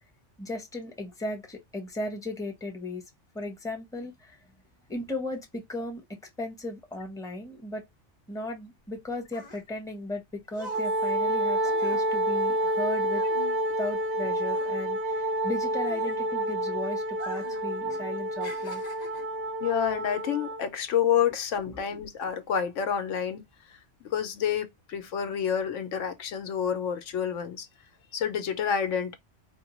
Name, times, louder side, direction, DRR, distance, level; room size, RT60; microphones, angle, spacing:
voice 1, 0.4-3.1 3.3-4.4 4.9-7.8 8.3-13.2 13.8-18.8 21.7-21.8, left 1 dB, 5° left, 0.8 m, -36 dB
sound 1, 8.8-14.2 14.4-16.6 17.1-17.7 18.0-19.4 20.1-20.3, left 4 dB, 40° left, 0.8 m, -46 dB
Wind instrument woodwind instrument, 10.6-20.6, right 1 dB, 65° right, 0.7 m, -29 dB
voice 2, 19.6-23.4 23.7-23.8 24.0-27.7 28.1-29.2, left 8 dB, 85° left, 1.1 m, -28 dB
4.4 x 2.3 x 3.0 m
omnidirectional pair, 1.2 m